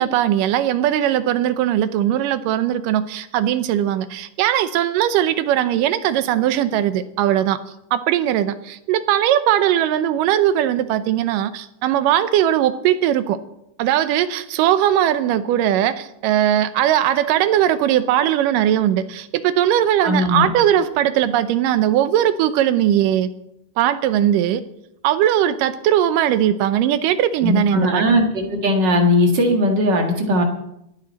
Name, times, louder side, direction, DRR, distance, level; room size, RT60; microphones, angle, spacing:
voice 1, 0.0-7.6 7.9-13.4 13.8-23.3 23.8-24.6 25.0-28.2, right 11 dB, 90° right, 12 dB, 2.4 m, -19 dB
voice 2, 20.0-20.5 27.4-30.4, left 1 dB, 40° right, 3 dB, 1.9 m, -18 dB
27.0 x 9.4 x 4.1 m, 0.82 s
omnidirectional pair, 3.7 m